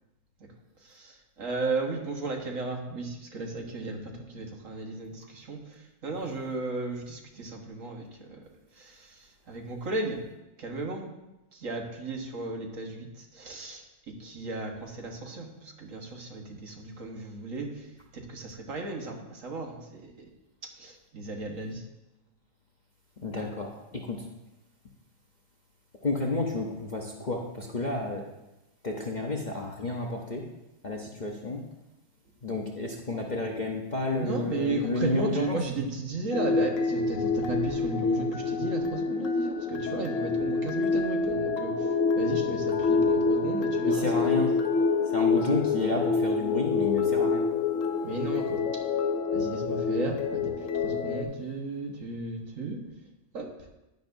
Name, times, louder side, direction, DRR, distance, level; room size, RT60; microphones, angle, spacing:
voice 1, 1.4-4.0 4.3-5.6 6.0-8.3 9.5-10.2 10.6-11.1 11.6-13.1 13.3-13.8 14.2-17.7 18.1-20.0 20.8-21.8 34.1-41.7 42.2-44.3 48.0-48.6 49.3-50.4 50.8-52.8 53.3-53.5, right 3 dB, 60° right, 2 dB, 1.7 m, -34 dB
voice 2, 23.2-24.2 26.0-28.3 28.8-30.4 30.8-31.6 32.4-35.7 43.9-44.5 45.1-47.5, left 2 dB, 40° left, 0 dB, 0.8 m, -31 dB
sound 1, 36.3-51.2, left 4 dB, 65° left, 1.1 m, -27 dB
10.5 x 10.5 x 2.7 m, 0.98 s
omnidirectional pair, 1.6 m